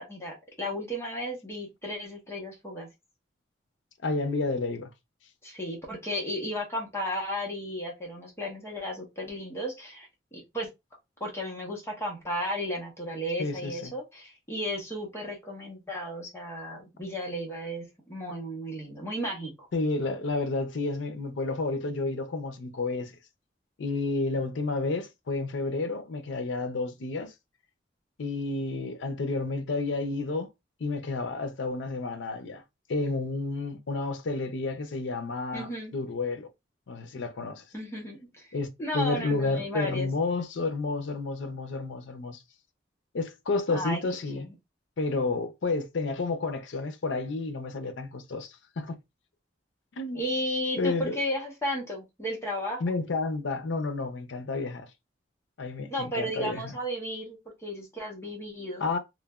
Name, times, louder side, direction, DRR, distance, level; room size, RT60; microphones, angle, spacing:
voice 1, 0.0-2.9 5.4-10.7 11.2-19.7 35.5-35.9 37.7-40.1 43.7-44.0 44.4-44.5 50.1-52.8 55.9-58.9, equal, 15° left, 0.8 m, -34 dB
voice 2, 4.0-4.9 13.4-13.9 19.7-23.2 23.8-27.3 28.2-30.5 30.8-32.6 32.9-36.5 36.9-37.6 38.5-38.7 38.9-42.4 43.1-44.5 45.0-49.0 50.0-50.2 50.8-51.2 52.8-54.9 55.6-56.8 58.8-59.0, left 3 dB, 75° left, 0.5 m, -30 dB
3.1 x 2.1 x 2.3 m
head